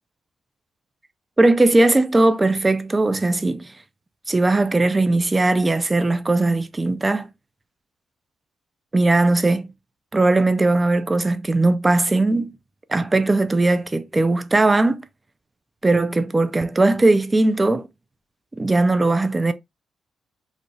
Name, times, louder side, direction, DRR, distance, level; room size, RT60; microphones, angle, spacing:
voice 1, 1.4-3.7 4.3-7.3 8.9-9.7 10.1-12.5 12.9-15.1 15.8-17.9 18.6-19.5, right 2 dB, 15° right, 0.4 m, -19 dB
3.9 x 2.3 x 3.0 m
cardioid pair, 130°, 0 cm